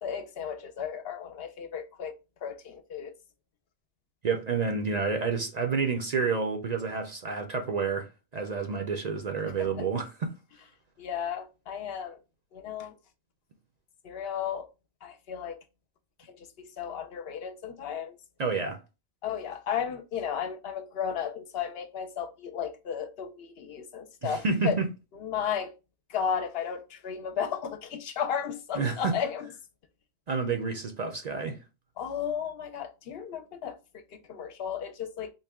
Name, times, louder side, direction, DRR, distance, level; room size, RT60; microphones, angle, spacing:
voice 1, 0.0-2.1 2.4-3.1 9.6-9.8 11.0-12.2 12.5-12.9 14.0-14.7 15.0-15.6 16.4-18.2 19.2-24.8 25.2-25.7 26.1-29.5 32.0-35.3, left 8 dB, 70° left, 0.8 m, -34 dB
voice 2, 4.2-10.3 18.4-18.8 24.2-24.9 28.8-29.2 30.3-31.6, right 5 dB, 50° right, 0.6 m, -29 dB
3.9 x 2.2 x 3.4 m
omnidirectional pair, 1.1 m